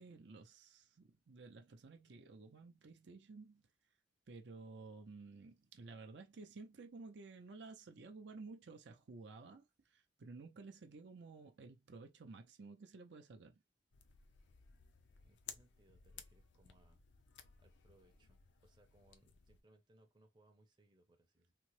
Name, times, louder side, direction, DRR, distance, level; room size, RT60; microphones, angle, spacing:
voice 1, 0.0-3.6 4.3-13.6, right 3 dB, 65° right, 0.5 m, -54 dB
sound 1, 13.9-19.6, left 7 dB, 75° left, 0.5 m, -58 dB
voice 2, 15.2-17.0 17.6-21.5, right 1 dB, 25° right, 0.6 m, -70 dB
3.7 x 2.0 x 3.0 m
head